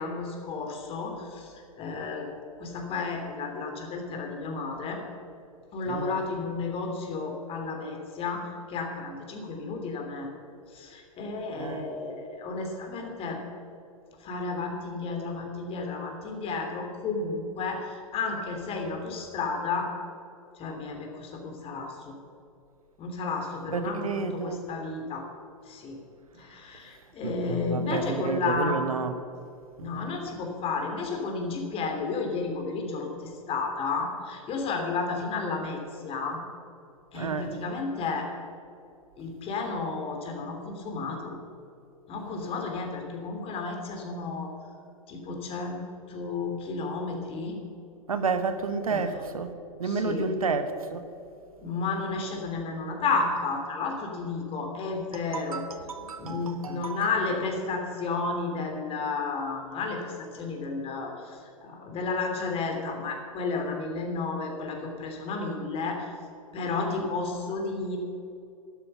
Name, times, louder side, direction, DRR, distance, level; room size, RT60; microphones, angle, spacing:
voice 1, 0.0-2.3 2.6-5.0 5.7-10.3 10.7-13.4 14.2-19.9 20.6-22.1 23.0-25.3 25.7-26.0 26.3-28.8 29.8-36.4 37.1-38.3 39.2-41.4 42.1-44.5 45.1-47.6 48.9-49.2 49.8-50.3 51.6-55.6 56.2-66.0 66.5-68.0, left 4 dB, 30° left, 2 dB, 3.1 m, -32 dB
voice 2, 5.9-6.2 11.6-11.9 23.7-24.7 27.2-29.1 29.8-30.0 37.1-37.5 48.1-49.5 49.8-51.0 55.1-57.1, right 4 dB, 80° right, 9 dB, 1.2 m, -31 dB
13.0 x 12.0 x 5.8 m, 2.6 s
figure-of-eight pair, 100°, 18 cm